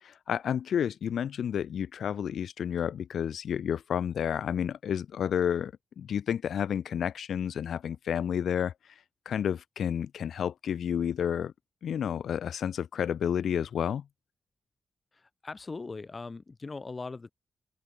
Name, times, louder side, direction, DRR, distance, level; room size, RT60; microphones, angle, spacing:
voice 1, 0.0-11.5 11.8-14.0, left 8 dB, 85° left, 0.7 m, -31 dB
voice 2, 15.4-17.3, left 3 dB, 40° left, 1.6 m, -39 dB
open air
cardioid pair, 55°, 0 cm